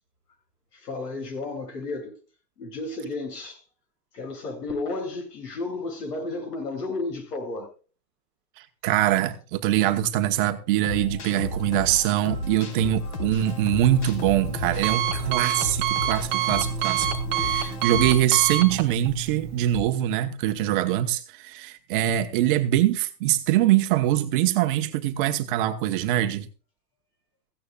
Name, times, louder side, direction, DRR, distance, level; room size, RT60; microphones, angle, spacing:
voice 1, 0.7-2.1 2.6-3.6 4.1-7.7, left 3 dB, 70° left, 7.8 m, -32 dB
voice 2, 8.6-26.5, right 12 dB, 30° right, 1.0 m, -23 dB
sound 1, 10.8-18.1, left 2 dB, 45° left, 5.2 m, -33 dB
Alarm, 13.4-19.8, right 10 dB, 10° right, 0.5 m, -28 dB
16.5 x 16.0 x 2.4 m
supercardioid pair, 160°, 49 cm